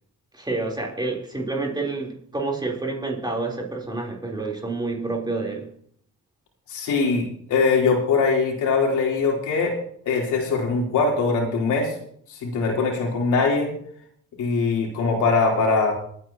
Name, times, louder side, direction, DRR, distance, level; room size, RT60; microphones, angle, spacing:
voice 1, 0.3-5.7, right 3 dB, 15° right, -1 dB, 3.7 m, -28 dB
voice 2, 6.7-9.8 10.0-11.9 12.3-13.7 14.4-15.9, left 4 dB, 80° left, 0 dB, 3.7 m, -22 dB
25.0 x 9.5 x 2.9 m, 0.64 s
cardioid pair, 90°, 30 cm